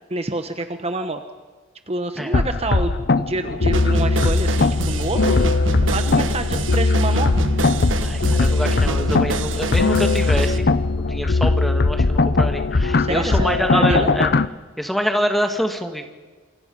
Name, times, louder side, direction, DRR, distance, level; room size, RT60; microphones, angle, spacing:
voice 1, 0.1-1.2 1.9-5.4 5.9-7.3 13.0-14.1, right 2 dB, 30° right, 8 dB, 1.1 m, -27 dB
sound 1, 2.3-14.5, left 3 dB, 50° left, 0.7 m, -19 dB
sound 2, 3.7-10.6, right 3 dB, 65° right, 1.4 m, -28 dB
voice 2, 8.0-10.7 11.0-14.3 14.8-16.1, equal, ahead, 5 dB, 1.9 m, -25 dB
28.0 x 24.0 x 5.5 m, 1.4 s
head